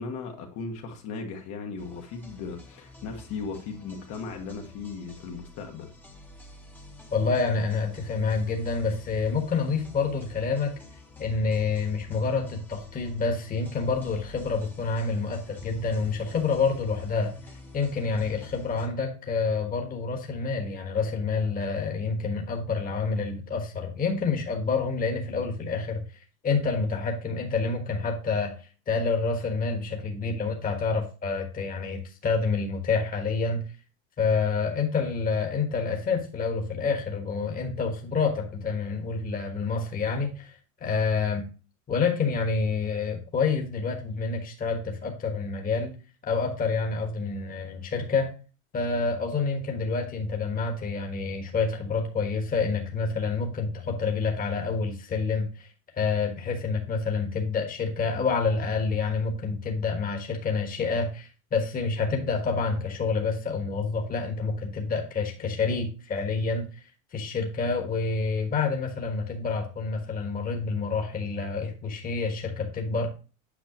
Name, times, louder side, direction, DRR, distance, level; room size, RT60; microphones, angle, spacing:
voice 1, 0.0-5.9, left 4 dB, 45° left, 1.3 m, -37 dB
sound 1, 1.8-18.9, left 2 dB, 5° left, 1.0 m, -48 dB
voice 2, 7.1-10.7 11.2-17.4 17.7-26.0 26.4-28.5 28.9-33.6 34.2-41.4 41.9-45.9 46.3-48.3 48.7-55.7 55.9-66.8 67.1-73.1, left 4 dB, 20° left, 1.4 m, -28 dB
8.4 x 5.6 x 2.9 m
supercardioid pair, 140°, 40 cm